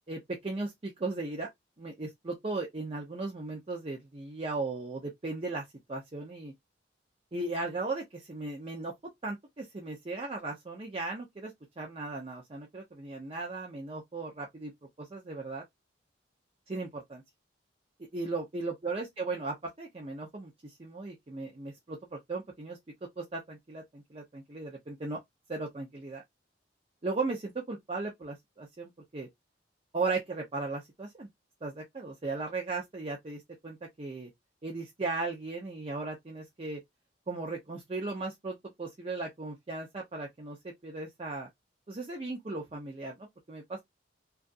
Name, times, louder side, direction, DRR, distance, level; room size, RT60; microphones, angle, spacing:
voice 1, 0.1-1.5 1.8-5.6 5.9-6.5 7.3-8.9 9.2-14.7 15.0-15.6 16.7-17.2 18.1-22.8 23.2-25.2 25.5-26.2 27.0-29.3 29.9-31.3 31.6-34.3 34.6-36.8 37.3-41.5 41.9-43.8, right 3 dB, 30° right, 0.5 m, -37 dB
2.7 x 2.3 x 2.5 m
head